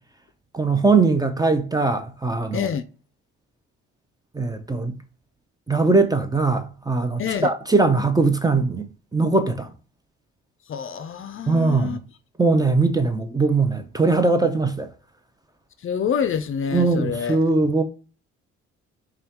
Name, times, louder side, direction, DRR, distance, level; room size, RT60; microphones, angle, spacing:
voice 1, 0.5-2.7 4.3-5.0 5.7-9.7 11.5-12.0 12.4-14.9 16.7-17.8, right 3 dB, 15° right, 0.5 m, -20 dB
voice 2, 2.5-2.9 7.2-7.5 10.7-12.0 15.8-17.4, left 7 dB, 45° left, 0.5 m, -27 dB
5.4 x 2.3 x 2.8 m
cardioid pair, 90°, 30 cm